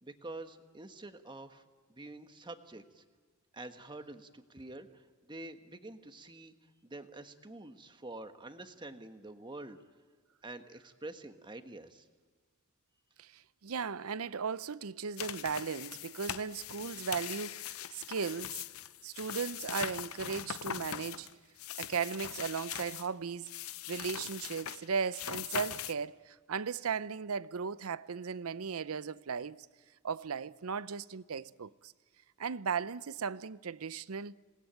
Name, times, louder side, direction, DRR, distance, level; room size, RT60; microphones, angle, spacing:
voice 1, 0.0-1.6 1.9-3.0 3.5-9.8 10.4-12.1, right 2 dB, 20° right, 1.4 m, -47 dB
voice 2, 13.2-18.7 19.0-21.4 21.8-29.6 30.0-31.9 32.4-34.4, right 6 dB, 80° right, 0.6 m, -37 dB
sound 1, 15.2-23.1 23.5-25.9, left 10 dB, 75° left, 0.7 m, -41 dB
27.0 x 19.5 x 9.1 m
head